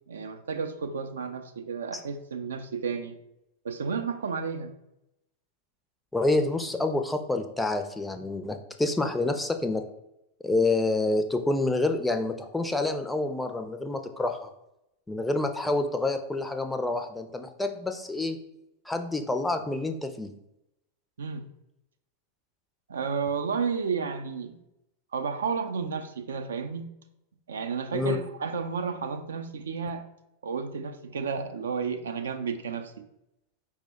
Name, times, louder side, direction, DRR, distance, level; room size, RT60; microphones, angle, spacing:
voice 1, 0.1-3.1 3.6-4.7 21.2-21.5 22.9-24.6 25.1-26.9 27.5-30.0 30.4-32.9, right 5 dB, 65° right, 7 dB, 0.3 m, -32 dB
voice 2, 6.1-9.8 10.4-14.5 15.1-18.4 18.9-20.3 27.9-28.2, left 2 dB, 5° left, 7 dB, 0.4 m, -28 dB
4.6 x 2.0 x 4.0 m, 0.84 s
figure-of-eight pair, 90°, 0 cm